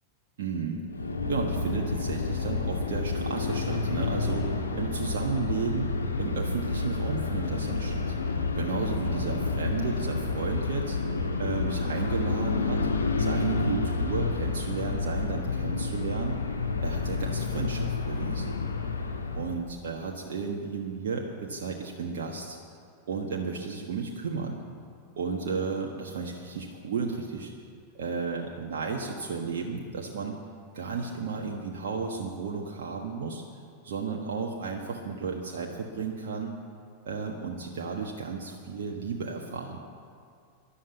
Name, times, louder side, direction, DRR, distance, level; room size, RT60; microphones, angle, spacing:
voice 1, 0.4-0.8 1.3-5.9 6.2-8.1 8.5-11.0 11.4-12.8 13.2-16.4 16.8-18.6 19.3-22.6 23.0-24.6 25.2-27.5 27.9-30.4 30.7-33.4 33.8-36.5 37.0-39.8, right 5 dB, 55° right, 0 dB, 1.4 m, -33 dB
sound 1, 0.9-19.6, left 3 dB, 75° left, 1.4 m, -29 dB
13.0 x 11.5 x 8.2 m, 2.3 s
figure-of-eight pair, 90°, 0 cm